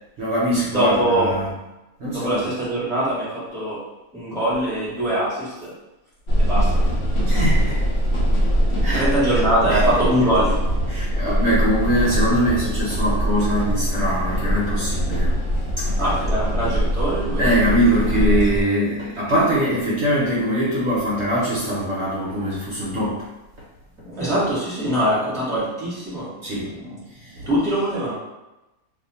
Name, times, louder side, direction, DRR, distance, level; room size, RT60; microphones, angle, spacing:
voice 1, 0.2-1.5 2.0-2.3 7.2-7.8 8.8-9.0 9.7-9.8 10.9-15.3 15.8-15.9 17.4-23.3 26.4-26.7 27.2-27.4, equal, 55° right, -6 dB, 0.9 m, -22 dB
voice 2, 0.7-1.3 2.1-3.8 4.1-5.7 6.4-6.9 8.8-10.7 16.0-17.5 24.0-27.0 27.3-28.1, right 1 dB, ahead, -8 dB, 1.1 m, -23 dB
sound 1, 6.3-18.6, equal, 60° left, 1.0 m, -22 dB
2.6 x 2.5 x 4.0 m, 0.99 s
omnidirectional pair, 1.5 m